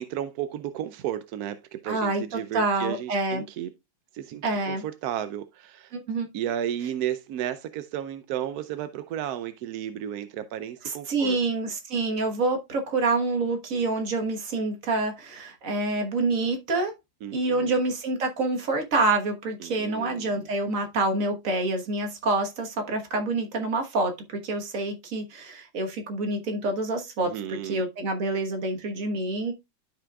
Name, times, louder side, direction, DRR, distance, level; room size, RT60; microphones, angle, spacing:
voice 1, 0.0-3.7 4.1-5.9 6.3-11.4 17.2-17.7 19.6-20.3 27.2-27.8, right 11 dB, 75° right, 0.9 m, -33 dB
voice 2, 1.8-3.4 4.4-4.8 5.9-6.3 10.8-16.9 17.3-29.5, right 2 dB, 50° right, 1.6 m, -27 dB
12.0 x 5.2 x 2.3 m
omnidirectional pair, 2.0 m